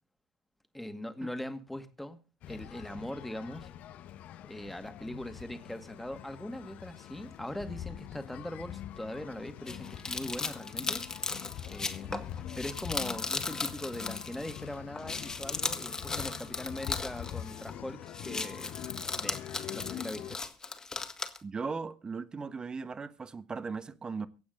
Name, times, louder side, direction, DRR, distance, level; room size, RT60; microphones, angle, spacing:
voice 1, 0.7-2.2 2.5-3.7 4.4-11.0 11.7-12.1 12.6-18.7 19.2-19.4 19.7-20.4, left 1 dB, 5° left, 2.1 m, -41 dB
sound 1, 2.4-20.4, left 11 dB, 55° left, 1.1 m, -44 dB
sound 2, 9.7-14.7 15.0-17.8 18.1-21.4, left 3 dB, 20° left, 2.1 m, -37 dB
voice 2, 21.4-24.3, right 4 dB, 25° right, 1.3 m, -38 dB
24.5 x 8.6 x 3.9 m
hypercardioid pair, 65°, 3 cm